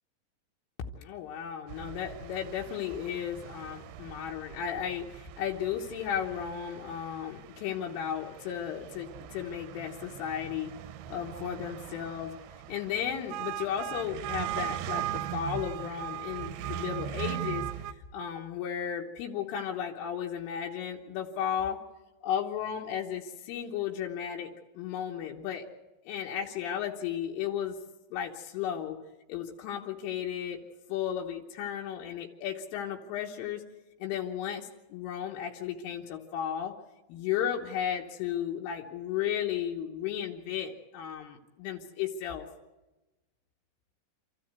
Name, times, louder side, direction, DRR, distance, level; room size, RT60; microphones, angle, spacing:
voice 1, 1.0-10.8 11.1-12.4 12.7-21.8 22.2-25.7 26.1-27.8 28.1-29.0 29.3-30.6 30.9-33.6 34.0-36.7 37.1-42.5, left 9 dB, 85° left, 0 dB, 3.7 m, -34 dB
sound 1, 1.7-17.9, right 13 dB, 80° right, 2.4 m, -39 dB
27.5 x 14.0 x 8.1 m, 1.1 s
omnidirectional pair, 5.7 m